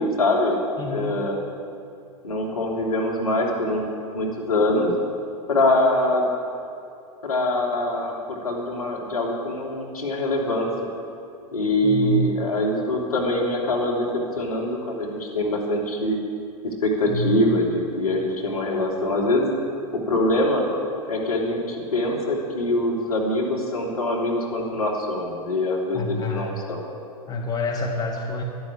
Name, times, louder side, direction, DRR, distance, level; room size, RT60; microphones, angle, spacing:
voice 1, 0.0-0.6 0.9-1.4 2.2-3.8 4.1-4.9 5.5-6.3 7.2-10.7 11.5-16.2 16.6-19.5 19.9-20.7 21.1-26.8, left 1 dB, 80° left, -2 dB, 3.1 m, -24 dB
voice 2, 0.8-1.2 11.8-12.3 17.1-17.4 25.9-26.6 27.3-28.4, left 1 dB, 20° left, 1 dB, 1.8 m, -27 dB
12.0 x 12.0 x 8.6 m, 2.6 s
figure-of-eight pair, 90°, 19 cm